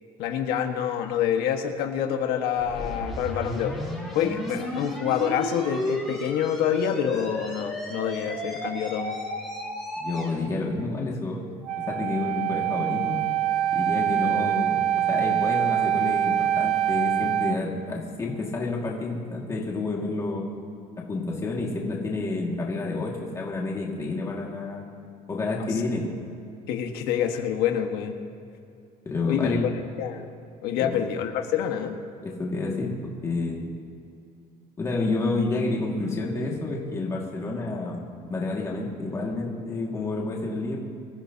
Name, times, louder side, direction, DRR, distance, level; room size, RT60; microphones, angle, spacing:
voice 1, 0.2-3.9 4.1-9.1 26.7-28.1 29.3-29.6 30.0-30.3 30.6-32.0, left 9 dB, 85° left, 4 dB, 1.5 m, -27 dB
sound 1, 2.6-10.4, left 1 dB, ahead, 3.5 m, -33 dB
voice 2, 10.0-11.4 11.9-13.2 13.7-20.4 21.0-24.8 25.3-26.1 29.0-29.7 30.8-31.0 32.2-33.7 34.8-38.0 38.3-40.8, left 3 dB, 20° left, -3 dB, 2.0 m, -29 dB
Wind instrument woodwind instrument, 11.6-17.6, right 11 dB, 40° right, 0.6 m, -24 dB
25.0 x 15.0 x 2.9 m, 2.6 s
cardioid pair, 175°, 16 cm